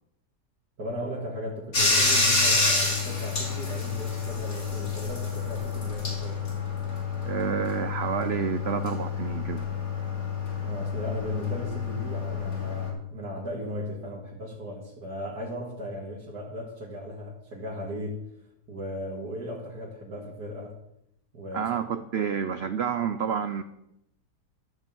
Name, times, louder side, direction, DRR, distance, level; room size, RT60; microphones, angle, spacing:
voice 1, 0.8-6.4 10.6-18.3 18.7-20.7 21.3-21.7, equal, 70° right, -5 dB, 2.5 m, -36 dB
Bathtub (filling or washing), 1.7-12.9, left 4 dB, 60° left, 3.0 m, -28 dB
voice 2, 7.2-9.7 21.5-23.6, right 7 dB, 90° right, 10 dB, 0.5 m, -29 dB
13.0 x 5.7 x 7.1 m, 0.82 s
omnidirectional pair, 1.8 m